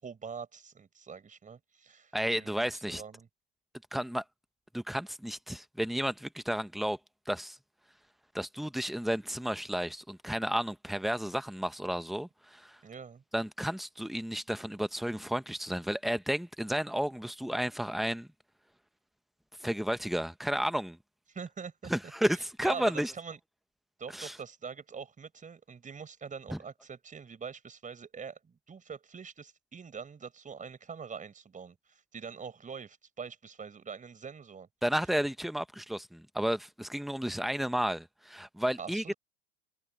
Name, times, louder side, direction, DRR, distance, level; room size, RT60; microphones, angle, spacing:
voice 1, 0.0-3.3 12.8-13.2 21.3-21.9 22.6-23.4 24.0-34.7 38.8-39.1, right 6 dB, 20° right, 5.1 m, -44 dB
voice 2, 2.1-3.0 3.9-4.2 4.7-7.0 7.3-7.6 8.3-12.8 13.3-18.3 19.6-21.0 21.9-23.1 24.1-24.4 26.5-26.6 34.8-39.1, equal, ahead, 1.3 m, -32 dB
hypercardioid pair, 100°, 39 cm